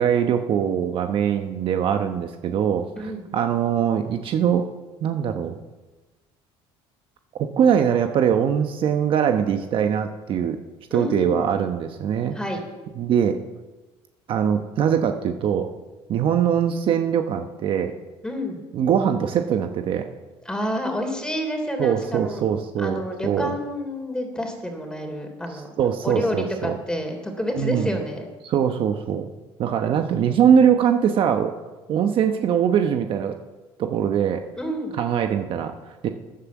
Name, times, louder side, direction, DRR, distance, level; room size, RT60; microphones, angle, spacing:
voice 1, 0.0-4.7 5.0-5.6 7.3-10.6 10.9-12.3 13.0-13.4 14.3-15.7 16.1-17.9 18.7-20.0 21.8-23.5 25.5-26.8 27.6-28.0 28.4-29.3 29.6-31.5 31.9-33.4 33.8-34.4 35.0-36.1, right 8 dB, 50° right, 6 dB, 1.0 m, -22 dB
voice 2, 10.9-11.5 12.3-12.6 18.2-18.6 20.4-22.4 22.8-25.7 26.0-28.3 29.8-30.0 34.6-34.9, equal, 5° left, 3 dB, 3.2 m, -29 dB
13.5 x 10.0 x 7.2 m, 1.2 s
cardioid pair, 125°, 11 cm